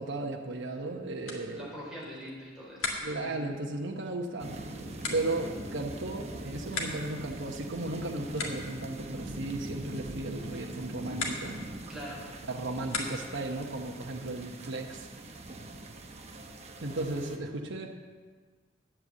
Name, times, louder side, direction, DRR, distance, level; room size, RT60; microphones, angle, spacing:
voice 1, 0.0-1.8 3.0-4.6 5.1-11.6 12.5-15.1 16.8-17.9, right 2 dB, 65° right, 2 dB, 1.0 m, -35 dB
sound 1, 1.2-13.5, left 3 dB, 75° left, 1.8 m, -42 dB
voice 2, 1.5-3.5 11.9-12.3, equal, 5° right, -7 dB, 4.4 m, -43 dB
sound 2, 4.4-17.4, right 1 dB, 35° right, 1.0 m, -42 dB
9.9 x 7.9 x 7.7 m, 1.5 s
head